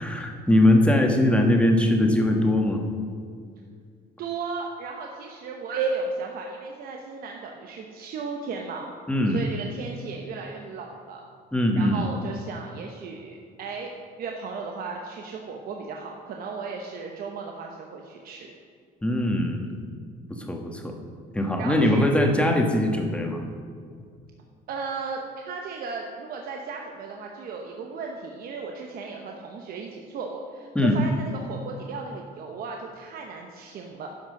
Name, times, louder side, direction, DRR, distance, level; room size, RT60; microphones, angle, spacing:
voice 1, 0.0-2.8 9.1-9.4 11.5-12.1 19.0-19.7 20.3-20.9 21.3-23.4 30.7-31.0, left 1 dB, 5° left, 2 dB, 1.3 m, -21 dB
voice 2, 4.2-8.9 9.3-11.2 11.8-13.9 14.2-18.5 21.6-22.1 24.7-34.1, right 4 dB, 60° right, 1 dB, 1.0 m, -35 dB
10.5 x 5.9 x 6.4 m, 2.1 s
cardioid pair, 110°, 17 cm